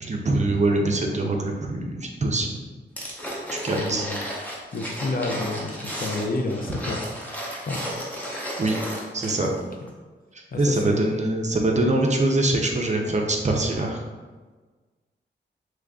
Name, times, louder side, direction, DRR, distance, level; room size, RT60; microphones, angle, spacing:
voice 1, 0.0-2.5 3.5-4.1 8.6-8.8 9.1-9.5 10.6-14.0, right 2 dB, 35° right, 1 dB, 0.5 m, -23 dB
sound 1, 3.0-9.6 9.9-10.0, equal, 10° left, 0.7 m, -33 dB
voice 2, 3.8-4.2 4.7-7.1 7.7-7.8 10.5-11.1, left 2 dB, 50° left, 2 dB, 0.5 m, -29 dB
3.1 x 2.5 x 3.5 m, 1.3 s
wide cardioid pair, 115°, 19 cm